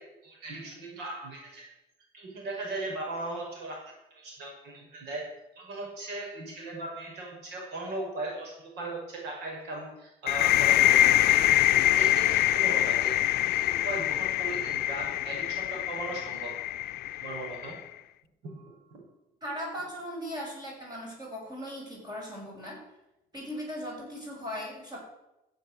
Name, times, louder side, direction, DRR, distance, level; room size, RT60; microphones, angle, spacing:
voice 1, 0.0-1.7 2.1-5.3 5.6-11.4 11.8-13.2 13.5-16.6 17.2-17.8 18.4-19.0, right 2 dB, 85° right, 0 dB, 5.6 m, -38 dB
sound 1, 10.3-17.8, left 14 dB, 70° left, 0.6 m, -24 dB
voice 2, 19.4-22.8 23.3-25.0, equal, 25° right, -2 dB, 6.3 m, -38 dB
14.5 x 7.7 x 7.7 m, 0.94 s
cardioid pair, 110°, 17 cm